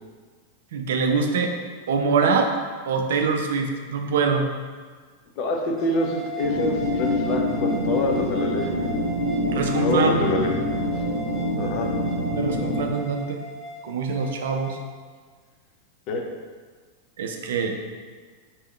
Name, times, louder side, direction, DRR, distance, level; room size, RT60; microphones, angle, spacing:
voice 1, 0.7-1.5 1.9-2.5 2.8-4.5 9.3-10.2 12.3-13.4 13.8-14.8 17.2-17.8, right 5 dB, 60° right, 4 dB, 0.4 m, -24 dB
voice 2, 5.4-8.9 9.5-10.5 11.6-11.9 16.1-16.2, left 2 dB, 40° left, 1 dB, 0.6 m, -26 dB
sound 1, 5.8-14.8, right 2 dB, 20° left, 1.3 m, -37 dB
sound 2, 6.4-12.9, left 1 dB, 90° left, 0.7 m, -26 dB
4.4 x 3.5 x 3.2 m, 1.5 s
figure-of-eight pair, 90°, 0 cm